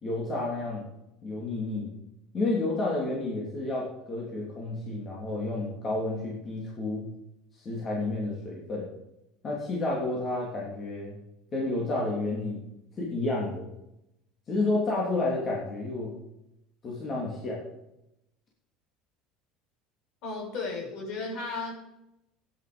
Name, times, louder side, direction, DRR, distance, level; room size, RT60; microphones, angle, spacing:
voice 1, 0.0-0.8 1.2-1.9 2.3-7.1 7.5-8.9 9.4-11.1 11.5-12.6 13.0-13.7 14.5-16.1 16.8-17.6, left 2 dB, 30° left, -4 dB, 3.3 m, -30 dB
voice 2, 20.2-21.8, left 3 dB, 60° left, 0 dB, 5.7 m, -34 dB
13.5 x 10.0 x 5.3 m, 0.86 s
cardioid pair, 140°, 0 cm